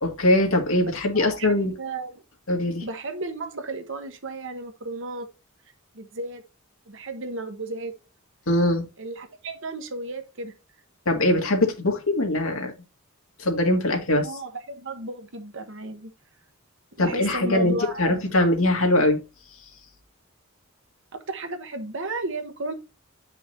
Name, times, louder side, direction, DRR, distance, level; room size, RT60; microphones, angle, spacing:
voice 1, 0.0-1.7 2.5-2.8 8.5-8.9 11.1-12.7 13.4-14.3 17.0-19.2, left 1 dB, 70° left, 2.1 m, -22 dB
voice 2, 0.8-2.1 2.8-5.3 5.9-6.4 6.9-7.9 9.0-10.5 14.2-16.1 17.0-18.3 21.1-22.7, right 2 dB, 60° right, 1.2 m, -34 dB
7.9 x 5.6 x 2.7 m
head